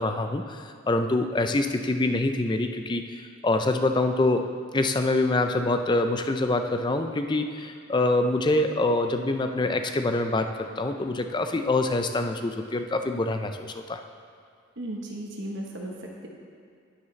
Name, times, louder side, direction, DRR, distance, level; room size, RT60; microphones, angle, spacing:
voice 1, 0.0-14.0, left 2 dB, 20° left, 7 dB, 0.4 m, -25 dB
voice 2, 14.8-16.3, right 1 dB, 60° right, 0 dB, 1.0 m, -35 dB
9.7 x 9.6 x 3.2 m, 2.3 s
head